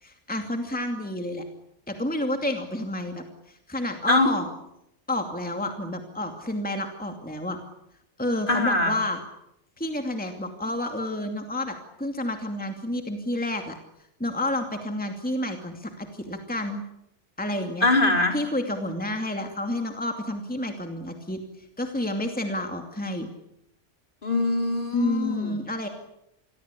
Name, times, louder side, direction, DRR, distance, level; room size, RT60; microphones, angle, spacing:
voice 1, 0.0-1.4 1.9-4.5 5.1-7.6 8.2-9.2 9.8-13.8 14.2-16.8 17.4-17.9 18.3-21.4 21.8-23.3 24.9-25.9, left 1 dB, 5° left, 4 dB, 2.5 m, -30 dB
voice 2, 8.5-9.0 17.8-18.4 24.2-25.5, left 2 dB, 40° left, 3 dB, 4.7 m, -22 dB
28.0 x 22.0 x 8.5 m, 0.81 s
omnidirectional pair, 1.3 m